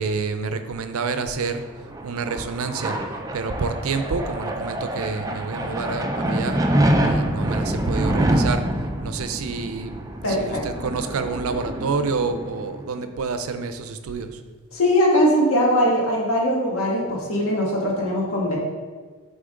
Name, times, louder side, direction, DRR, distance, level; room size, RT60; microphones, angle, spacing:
voice 1, 0.0-1.6 2.0-3.0 3.3-6.6 7.1-8.6 9.0-9.9 10.2-14.4, right 4 dB, 85° right, 9 dB, 0.5 m, -28 dB
sound 1, 1.6-12.9, right 1 dB, 15° right, 0.4 m, -26 dB
voice 2, 10.2-10.9 14.7-18.6, equal, 85° left, -2 dB, 1.6 m, -21 dB
8.7 x 3.7 x 3.8 m, 1.4 s
head